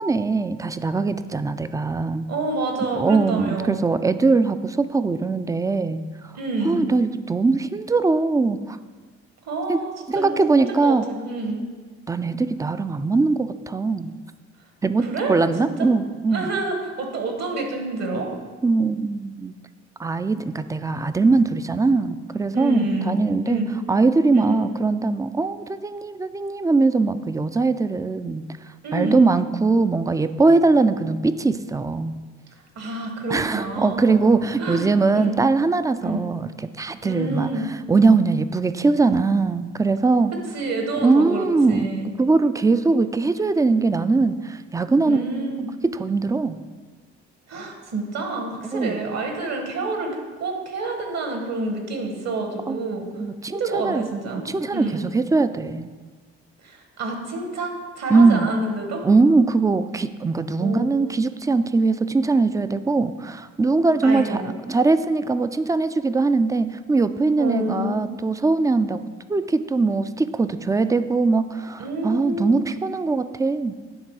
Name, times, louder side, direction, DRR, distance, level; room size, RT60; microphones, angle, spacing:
voice 1, 0.0-2.3 3.0-6.0 6.6-8.8 9.7-9.8 10.1-11.0 12.1-14.1 14.8-16.5 18.6-19.5 20.0-23.6 23.9-28.4 28.9-32.1 33.3-36.5 36.8-37.5 37.9-40.3 41.0-41.9 42.2-45.2 45.8-46.6 48.7-49.0 52.7-52.8 53.2-55.9 58.1-58.5 59.0-69.0 69.3-73.7, right 3 dB, 10° right, 12 dB, 0.3 m, -21 dB
voice 2, 2.3-3.8 6.3-6.9 9.4-11.6 15.0-15.9 16.3-18.3 22.5-23.2 23.4-23.7 24.3-24.6 28.8-29.3 32.7-35.3 36.0-36.2 37.0-37.7 40.5-42.1 45.0-45.7 47.5-53.1 53.5-54.4 54.7-55.0 56.6-59.0 60.6-60.9 64.0-64.5 67.4-68.0 71.8-72.7, right 2 dB, 60° right, 3 dB, 1.6 m, -28 dB
9.9 x 3.6 x 4.8 m, 1.4 s
supercardioid pair, 65°, 30 cm